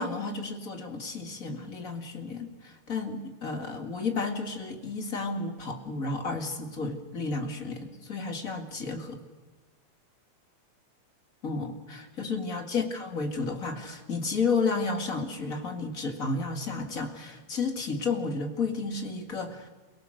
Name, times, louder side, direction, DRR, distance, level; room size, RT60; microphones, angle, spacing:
voice 1, 0.0-9.2 11.4-19.7, left 4 dB, 30° left, 4 dB, 1.8 m, -32 dB
29.0 x 17.5 x 6.4 m, 1.3 s
omnidirectional pair, 3.8 m